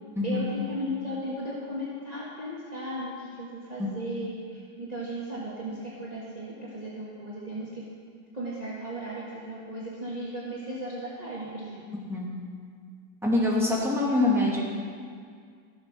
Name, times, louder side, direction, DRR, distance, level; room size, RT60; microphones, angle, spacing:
voice 1, 0.2-7.8 8.3-11.8, right 1 dB, 25° right, -7 dB, 1.6 m, -36 dB
voice 2, 13.2-14.6, left 2 dB, ahead, -5 dB, 2.2 m, -24 dB
14.0 x 7.7 x 6.0 m, 2.1 s
omnidirectional pair, 1.9 m